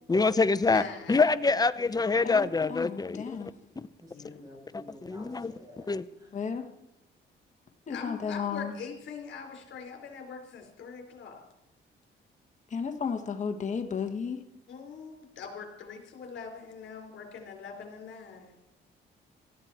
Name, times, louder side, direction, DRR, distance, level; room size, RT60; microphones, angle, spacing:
voice 1, 0.1-0.8 1.1-3.5 4.7-5.5 5.9-6.0, left 4 dB, 20° left, 15 dB, 0.7 m, -25 dB
voice 2, 0.6-1.2 4.1-4.4 7.9-11.4 14.7-18.6, left 5 dB, 70° left, 3 dB, 4.4 m, -43 dB
voice 3, 2.2-3.5 6.3-6.7 7.9-8.7 12.7-14.4, left 6 dB, 40° left, 6 dB, 1.5 m, -33 dB
voice 4, 3.7-5.9 6.2-6.3, left 1 dB, 20° right, -1 dB, 7.3 m, -52 dB
17.5 x 13.5 x 4.4 m, 0.87 s
cardioid pair, 90°, 20 cm